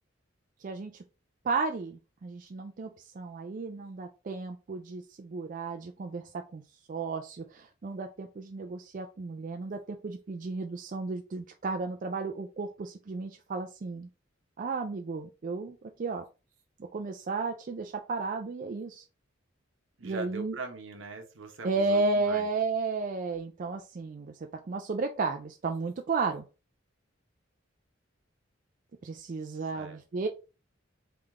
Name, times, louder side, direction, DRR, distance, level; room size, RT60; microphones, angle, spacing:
voice 1, 0.6-1.0 1.4-2.9 3.1-6.6 6.9-14.1 14.6-16.2 16.9-19.0 20.0-20.6 21.6-26.4 29.0-30.3, right 3 dB, 40° right, 5 dB, 0.4 m, -33 dB
voice 2, 20.0-22.5 29.5-30.2, right 4 dB, 75° right, 5 dB, 1.1 m, -42 dB
3.7 x 3.4 x 3.6 m, 0.31 s
head